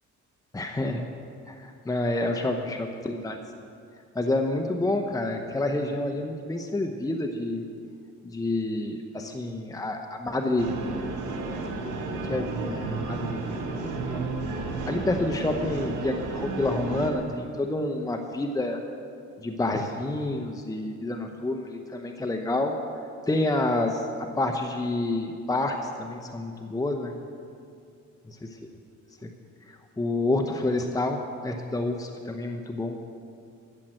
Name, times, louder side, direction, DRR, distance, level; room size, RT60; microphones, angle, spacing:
voice 1, 0.5-1.0 1.5-3.4 4.1-7.6 8.2-10.7 12.1-14.3 14.6-18.8 19.4-22.8 23.3-27.1 28.3-28.6 29.2-29.3 30.0-33.0, left 2 dB, 10° left, 4 dB, 0.8 m, -28 dB
sound 1, 10.6-17.1, right 3 dB, 85° right, 1.6 m, -32 dB
13.0 x 7.5 x 7.8 m, 2.5 s
cardioid pair, 90°, 30 cm